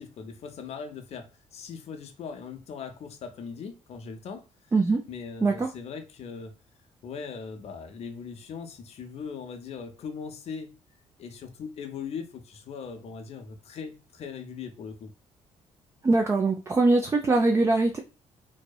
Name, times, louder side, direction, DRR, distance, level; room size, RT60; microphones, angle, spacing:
voice 1, 0.0-4.4 5.1-6.5 7.0-10.8 11.2-15.1, left 6 dB, 55° left, 0.5 m, -39 dB
voice 2, 4.7-5.0 5.4-5.7 16.0-18.0, right 3 dB, 20° right, 0.4 m, -22 dB
2.7 x 2.0 x 2.3 m
supercardioid pair, 65°, 13 cm